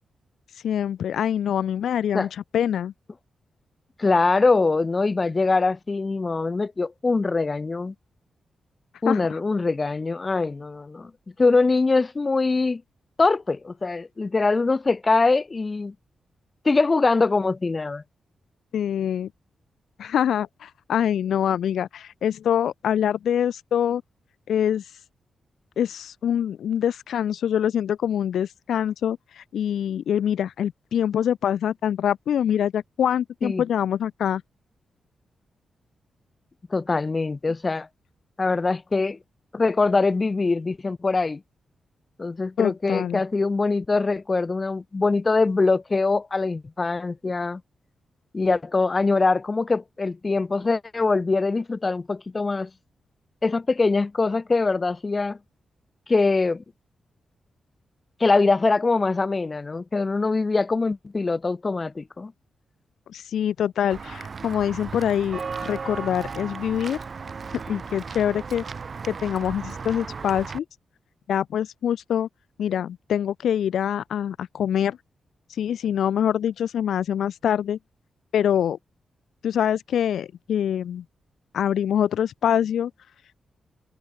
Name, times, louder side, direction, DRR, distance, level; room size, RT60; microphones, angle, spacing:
voice 1, 0.6-2.3 2.5-2.9 9.1-9.2 18.7-19.3 20.0-24.0 24.5-24.8 25.8-34.4 42.6-43.2 63.1-67.0 67.7-68.6 69.1-70.6 71.3-72.3 72.6-75.0 75.6-77.8 78.3-78.8 79.4-81.0 81.5-82.9, left 9 dB, 90° left, 0.4 m, -24 dB
voice 2, 4.0-7.9 9.0-11.1 11.4-12.8 13.2-15.9 16.6-18.0 33.4-33.6 36.7-37.9 38.4-39.2 39.5-41.4 42.2-47.6 48.3-52.7 53.4-55.4 56.1-56.6 58.2-62.3, left 3 dB, 30° left, 1.2 m, -23 dB
Walk footsteps / Bell, 63.9-70.6, right 5 dB, 40° right, 5.8 m, -35 dB
wide cardioid pair, 125°, 0 cm